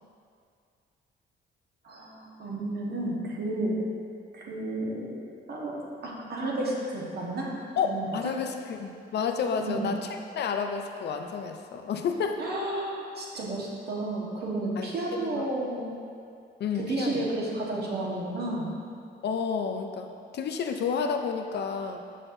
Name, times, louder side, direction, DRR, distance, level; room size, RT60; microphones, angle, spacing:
voice 1, 1.8-3.8 4.3-5.2 5.5-7.5 7.8-8.1 9.6-9.9 12.4-15.8 16.8-18.7, right 2 dB, 55° right, -3 dB, 1.3 m, -32 dB
voice 2, 7.8-12.4 14.8-15.5 16.6-17.2 19.2-22.0, left 6 dB, 60° left, 5 dB, 0.5 m, -30 dB
6.3 x 6.0 x 2.6 m, 2.3 s
cardioid pair, 90°, 20 cm